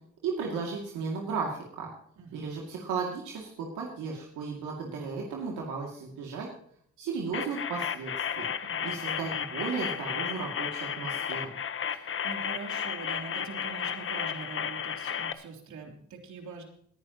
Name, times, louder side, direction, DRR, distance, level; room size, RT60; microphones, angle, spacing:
voice 1, 0.2-1.9 2.3-6.5 7.0-8.5 8.8-11.6, right 5 dB, 90° right, -1 dB, 2.4 m, -35 dB
voice 2, 2.2-2.5 8.6-9.0 11.9-16.7, right 4 dB, 70° right, 2 dB, 3.2 m, -43 dB
sound 1, 7.3-15.3, left 7 dB, 45° left, 1.0 m, -33 dB
20.0 x 10.5 x 3.0 m, 0.63 s
cardioid pair, 90°, 30 cm